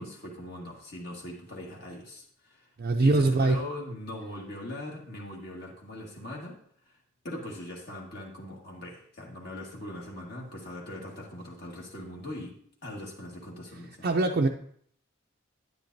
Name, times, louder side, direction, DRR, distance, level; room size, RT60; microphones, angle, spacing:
voice 1, 0.0-2.7 3.0-6.6 6.9-7.0 7.2-12.5 12.8-14.1, left 1 dB, 50° left, -2 dB, 1.6 m, -41 dB
voice 2, 2.8-3.6 14.0-14.5, right 2 dB, 50° right, 1 dB, 0.5 m, -23 dB
10.5 x 9.5 x 2.6 m, 0.62 s
head